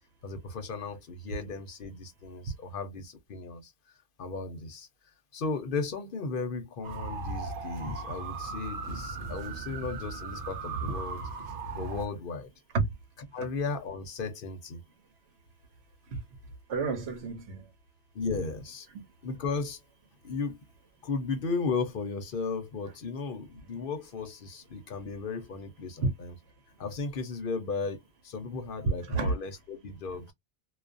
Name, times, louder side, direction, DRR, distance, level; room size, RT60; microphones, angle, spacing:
voice 1, 0.2-3.7 4.2-4.9 5.3-11.3 11.7-12.5 13.3-14.8 18.1-18.9 19.2-19.8 20.2-20.6 21.0-26.3 26.8-30.3, left 4 dB, 60° left, 0.9 m, -35 dB
sound 1, 6.8-12.1, right 4 dB, 60° right, 0.7 m, -37 dB
voice 2, 16.7-17.7 26.0-26.1 29.1-29.3, right 3 dB, 80° right, 1.0 m, -29 dB
2.4 x 2.3 x 2.4 m
omnidirectional pair, 1.1 m